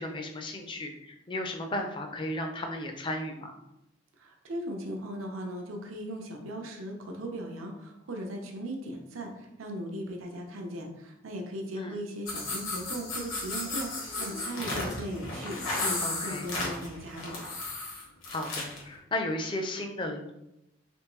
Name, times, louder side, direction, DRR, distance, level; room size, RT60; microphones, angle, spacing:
voice 1, 0.0-3.6 11.7-12.0 16.0-16.5 18.3-20.3, left 1 dB, 25° left, 4 dB, 0.4 m, -34 dB
voice 2, 4.2-17.4, equal, 85° right, 2 dB, 0.6 m, -38 dB
sound 1, 12.3-18.8, left 2 dB, 80° left, 1.2 m, -34 dB
3.5 x 3.0 x 3.0 m, 0.86 s
head